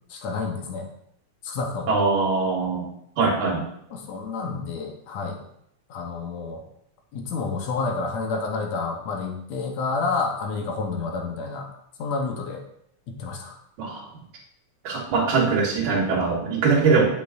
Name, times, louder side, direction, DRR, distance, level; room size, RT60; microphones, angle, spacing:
voice 1, 0.1-0.9 1.4-1.9 3.9-5.4 5.9-6.6 7.1-11.7 12.0-12.6 13.1-13.6, left 4 dB, 70° left, 2 dB, 2.2 m, -29 dB
voice 2, 1.9-2.8 3.2-3.6 13.8-14.1 14.8-17.0, right 4 dB, 90° right, -2 dB, 3.1 m, -22 dB
8.5 x 6.7 x 2.6 m, 0.73 s
omnidirectional pair, 3.4 m